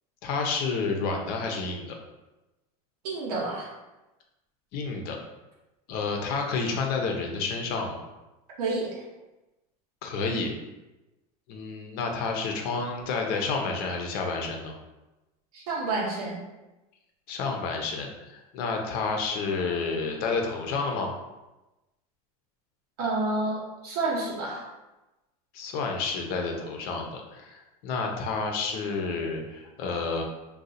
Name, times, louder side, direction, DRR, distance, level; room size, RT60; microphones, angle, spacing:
voice 1, 0.2-2.0 4.7-5.2 5.9-8.0 10.0-10.5 11.5-14.7 17.3-21.1 25.5-30.2, left 4 dB, 55° left, 2 dB, 0.7 m, -30 dB
voice 2, 3.0-3.7 8.6-9.0 15.5-16.4 23.0-24.6, right 2 dB, 85° right, -4 dB, 1.0 m, -29 dB
2.6 x 2.4 x 4.1 m, 1.0 s
supercardioid pair, 120°, 19 cm